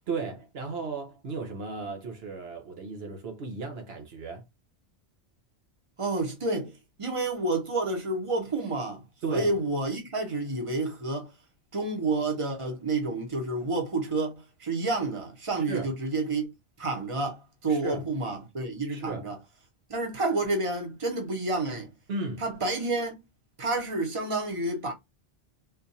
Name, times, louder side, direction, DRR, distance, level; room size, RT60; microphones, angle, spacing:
voice 1, 0.1-4.4 9.2-9.6 15.7-15.9 17.7-18.1 18.9-19.3 22.1-22.4, right 4 dB, 70° right, 1.0 m, -35 dB
voice 2, 6.0-9.0 9.3-11.3 11.7-14.3 14.6-16.5 16.8-19.4 19.9-21.9 22.4-23.2 23.6-24.9, right 2 dB, 30° right, 1.1 m, -29 dB
3.7 x 2.5 x 2.7 m
omnidirectional pair, 1.1 m